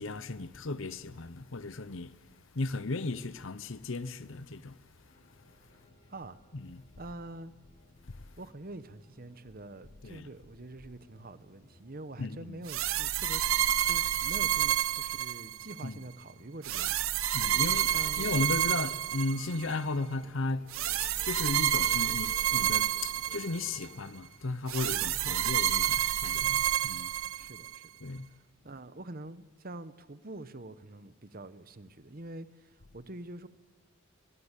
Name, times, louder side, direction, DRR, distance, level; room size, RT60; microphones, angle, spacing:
voice 1, 0.0-2.1 2.5-4.8 6.5-6.8 8.1-8.2 10.0-10.3 12.2-12.6 15.8-16.0 17.3-20.7 21.0-27.2 28.0-28.3, left 3 dB, 65° left, 0.9 m, -35 dB
sound 1, 5.0-24.0, equal, 30° left, 7.4 m, -60 dB
voice 2, 7.0-7.5 8.4-17.5 17.9-18.5 25.1-25.4 27.3-27.9 28.6-33.5, right 2 dB, 40° right, 1.0 m, -45 dB
sound 2, 12.7-15.8 16.6-19.7 20.7-23.9 24.7-27.8, right 12 dB, 70° right, 0.7 m, -29 dB
23.5 x 22.5 x 8.3 m
head